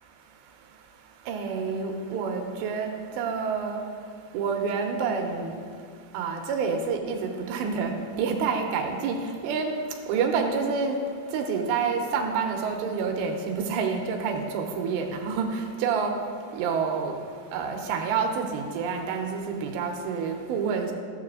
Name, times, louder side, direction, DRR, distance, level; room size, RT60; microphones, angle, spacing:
voice 1, 1.3-2.9 3.2-3.8 4.3-5.6 6.1-7.9 8.2-9.7 10.1-11.0 11.3-15.5 15.8-16.1 16.5-17.1 17.5-20.9, right 5 dB, 85° right, 3 dB, 3.0 m, -28 dB
15.0 x 7.3 x 3.7 m, 2.1 s
omnidirectional pair, 5.1 m